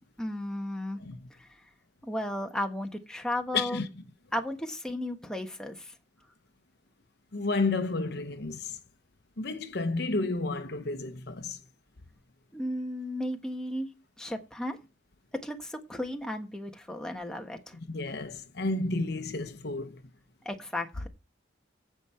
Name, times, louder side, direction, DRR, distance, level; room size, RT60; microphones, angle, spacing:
voice 1, 0.2-1.0 1.3-1.5 2.0-3.8 4.3-5.9 12.5-13.9 14.2-14.8 15.4-17.8 20.4-21.1, left 1 dB, 5° left, 1.3 m, -34 dB
voice 2, 3.5-3.9 7.3-8.8 9.4-11.6 17.9-20.0, left 3 dB, 55° left, 0.9 m, -31 dB
15.5 x 5.5 x 4.4 m
head